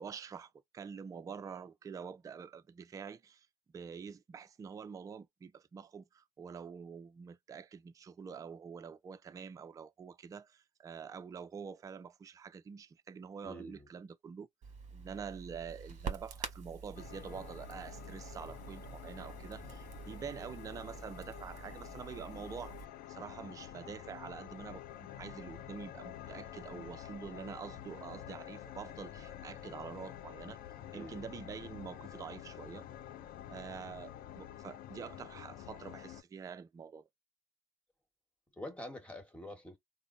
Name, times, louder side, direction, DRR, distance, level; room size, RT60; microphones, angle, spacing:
voice 1, 0.0-3.5 3.7-14.5 14.9-22.8 23.1-30.6 30.9-32.9 33.5-37.0, right 6 dB, 20° right, 0.4 m, -46 dB
voice 2, 13.4-13.9 30.9-31.2 38.6-39.8, left 1 dB, 5° left, 1.3 m, -46 dB
Crackle, 14.6-22.8, right 5 dB, 40° right, 1.2 m, -47 dB
sound 1, 17.0-36.2, left 11 dB, 55° left, 0.5 m, -49 dB
3.8 x 2.0 x 2.5 m
supercardioid pair, 90°, 18 cm